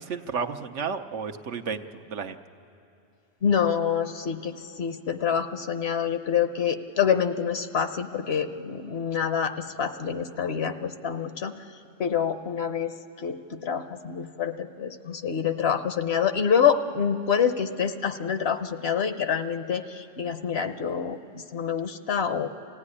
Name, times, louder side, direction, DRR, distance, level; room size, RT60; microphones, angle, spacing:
voice 1, 0.0-2.4, right 5 dB, 70° right, 6 dB, 1.1 m, -32 dB
voice 2, 3.4-11.6 12.0-22.5, left 7 dB, 60° left, 9 dB, 1.1 m, -27 dB
25.5 x 16.0 x 9.9 m, 2.7 s
omnidirectional pair, 1.3 m